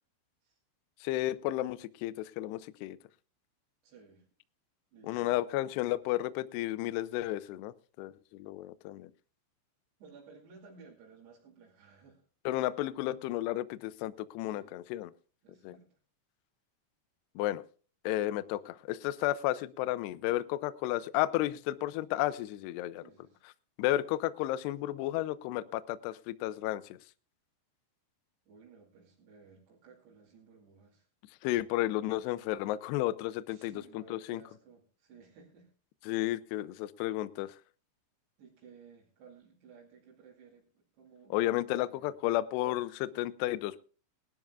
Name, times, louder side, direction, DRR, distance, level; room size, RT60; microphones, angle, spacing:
voice 1, 1.0-3.0 5.0-9.1 12.5-15.1 15.6-15.8 17.4-17.6 18.0-23.0 23.8-26.8 31.4-34.4 36.1-37.6 41.3-43.8, left 15 dB, 85° left, 13 dB, 2.4 m, -32 dB
voice 2, 3.8-4.3 4.9-5.4 10.0-12.2 14.4-14.8 15.4-16.0 23.0-23.5 28.5-31.1 33.5-35.7 36.5-36.6 38.4-41.4 41.7-42.2, right 5 dB, 60° right, -3 dB, 4.3 m, -57 dB
21.0 x 12.0 x 2.3 m, 0.39 s
omnidirectional pair, 5.6 m